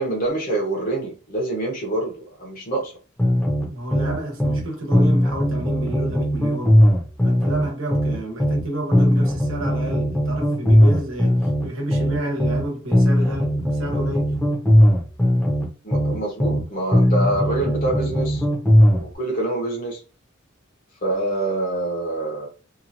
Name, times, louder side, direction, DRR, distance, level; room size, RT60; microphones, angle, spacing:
voice 1, 0.0-2.9 15.8-18.4 18.9-20.0 21.0-22.5, right 2 dB, 45° left, 0.8 m, -26 dB
sound 1, 3.2-4.6 4.9-8.6 8.9-12.6 12.9-16.6 16.9-19.0, equal, 5° left, 0.7 m, -18 dB
voice 2, 3.7-6.8 7.2-14.3, right 1 dB, 75° right, 1.1 m, -30 dB
2.9 x 2.3 x 2.5 m
head